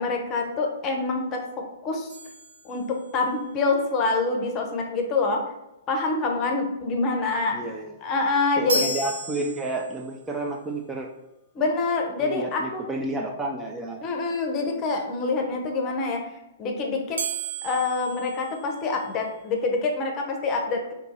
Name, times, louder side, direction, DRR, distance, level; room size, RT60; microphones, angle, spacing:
voice 1, 0.0-2.2 2.6-5.4 5.9-7.6 8.0-8.8 11.5-12.8 14.0-17.2 17.6-20.9, left 3 dB, 30° left, 2 dB, 0.7 m, -26 dB
sound 1, 2.1-3.4 8.7-10.2 17.2-19.3, right 1 dB, 75° right, 0.6 m, -33 dB
voice 2, 7.5-7.9 8.6-11.1 12.2-14.0, right 2 dB, 15° right, 1 dB, 0.4 m, -31 dB
2.7 x 2.6 x 3.9 m, 0.93 s
figure-of-eight pair, 115°, 0 cm